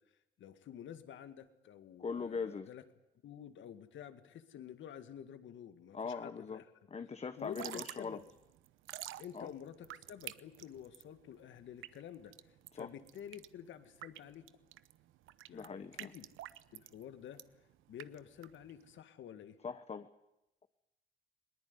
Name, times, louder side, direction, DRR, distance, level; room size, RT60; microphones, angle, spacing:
voice 1, 0.4-2.8 3.2-6.7 7.4-8.3 9.2-14.5 15.5-16.3 16.7-19.6, left 9 dB, 75° left, 10 dB, 2.0 m, -50 dB
voice 2, 2.0-2.7 5.9-6.6 6.9-8.2 9.3-9.5 12.8-12.9 15.5-16.1 19.6-20.1, left 5 dB, 30° left, 10 dB, 1.1 m, -41 dB
Drip / Trickle dribble, 7.4-19.0, right 14 dB, 85° right, 0.8 m, -50 dB
21.0 x 19.5 x 9.8 m, 0.88 s
cardioid pair, 90°, 20 cm